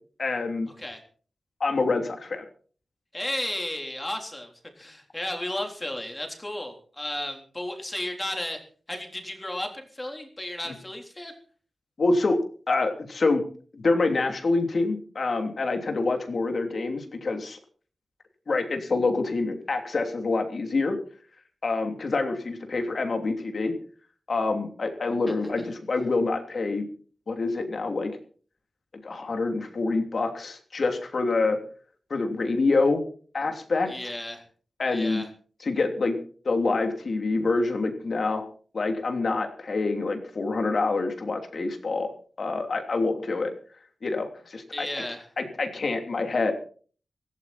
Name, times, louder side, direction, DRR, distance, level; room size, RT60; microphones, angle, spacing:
voice 1, 0.2-0.7 1.6-2.4 12.0-12.4 12.7-13.4 13.7-17.6 18.5-21.0 21.6-23.7 24.3-26.9 27.3-28.1 29.0-31.6 32.1-33.0 33.3-33.9 34.8-35.2 35.6-36.2 36.4-38.4 38.7-42.1 42.4-43.5 44.0-44.9 45.4-46.5, left 3 dB, 50° left, 5 dB, 3.0 m, -26 dB
voice 2, 3.1-8.6 8.9-11.3 33.9-34.4 34.9-35.3 44.7-45.3, left 1 dB, 15° left, 3 dB, 3.7 m, -34 dB
17.5 x 16.5 x 4.3 m, 0.43 s
wide cardioid pair, 155°, 0 cm